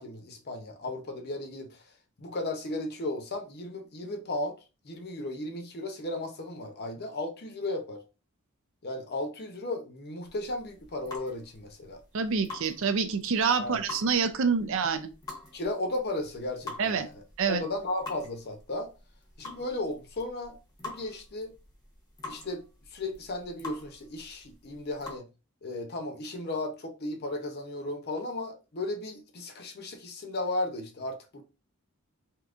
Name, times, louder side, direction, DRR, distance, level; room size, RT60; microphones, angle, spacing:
voice 1, 0.0-1.8 2.2-4.6 4.8-8.0 8.8-12.0 13.6-13.8 14.6-14.7 15.5-17.2 17.5-18.9 19.4-21.5 22.2-22.7 22.9-25.3 25.6-31.4, left 2 dB, 45° left, 0.7 m, -35 dB
sound 1, 10.2-25.2, left 3 dB, 15° left, 0.9 m, -46 dB
voice 2, 12.1-15.1 16.8-17.1 17.4-17.6, right 5 dB, 60° right, 0.5 m, -27 dB
3.6 x 2.8 x 2.4 m
head